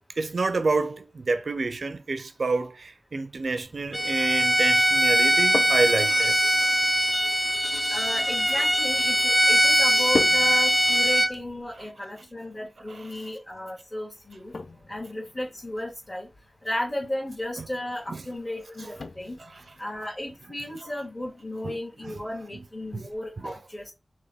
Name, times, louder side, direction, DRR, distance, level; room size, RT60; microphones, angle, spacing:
voice 1, 0.2-6.5 12.9-13.1 17.6-17.7 18.1-18.2 18.8-18.9 21.6-21.8 22.0-22.1 22.9-23.1 23.4-23.6, right 3 dB, 75° right, 0.5 m, -28 dB
Bowed string instrument, 3.9-11.3, right 1 dB, ahead, 0.3 m, -22 dB
sound 1, 5.1-23.2, left 3 dB, 75° left, 0.4 m, -40 dB
voice 2, 7.9-14.5 14.9-16.3 16.6-19.4 19.8-23.9, left 1 dB, 30° left, 1.6 m, -34 dB
3.5 x 2.2 x 3.5 m
cardioid pair, 40°, 0 cm